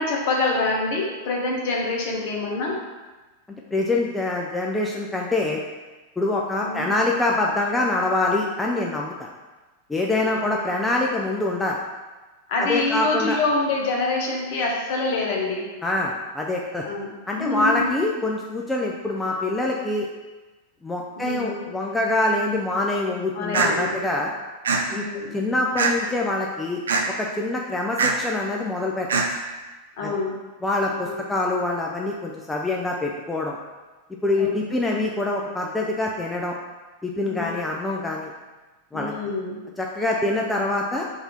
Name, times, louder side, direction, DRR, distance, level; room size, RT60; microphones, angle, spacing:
voice 1, 0.0-2.8 6.6-6.9 10.1-10.5 12.5-15.8 16.8-18.0 21.2-21.7 23.3-24.0 24.9-25.4 30.0-30.3 31.0-31.2 34.4-34.5 37.2-37.5 38.9-39.6, left 3 dB, 50° left, -1 dB, 0.9 m, -26 dB
voice 2, 3.7-5.6 6.2-9.3 9.9-11.8 12.6-13.4 15.8-16.8 17.3-20.1 20.8-24.3 24.9-25.1 25.3-26.8 27.2-29.1 30.0-30.1 30.6-33.6 34.2-36.5 37.0-38.3 38.9-39.1 39.8-41.1, left 2 dB, 10° left, -2 dB, 0.4 m, -25 dB
sound 1, 23.5-23.7 24.6-24.8 25.8-26.1 26.9-27.0 28.0-28.1 29.1-29.3, right 5 dB, 65° right, 0.4 m, -21 dB
3.9 x 2.6 x 4.4 m, 1.2 s
figure-of-eight pair, 90°, 0 cm